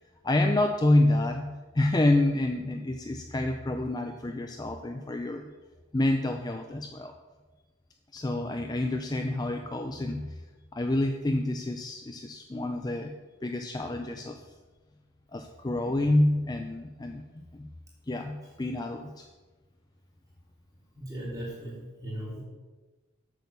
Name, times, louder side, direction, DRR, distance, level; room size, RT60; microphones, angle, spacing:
voice 1, 0.2-5.5 5.9-7.1 8.1-10.4 10.7-13.2 13.4-14.4 15.3-17.7 18.1-19.3, left 1 dB, 20° left, 5 dB, 0.4 m, -28 dB
voice 2, 20.9-22.4, right 1 dB, 15° right, -5 dB, 3.3 m, -38 dB
8.1 x 6.4 x 6.8 m, 1.2 s
head